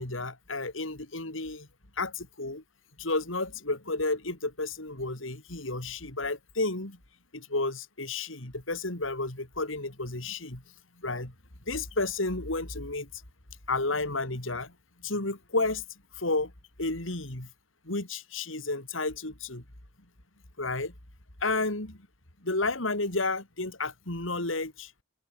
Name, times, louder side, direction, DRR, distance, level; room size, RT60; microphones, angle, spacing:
voice 1, 0.0-1.7 2.0-2.6 3.0-7.0 7.3-10.6 11.0-11.3 11.7-13.1 13.7-14.7 15.0-15.8 16.2-16.5 16.8-17.5 17.8-19.6 20.6-20.9 21.4-22.1 22.4-24.9, left 2 dB, 85° left, 4.2 m, -31 dB
head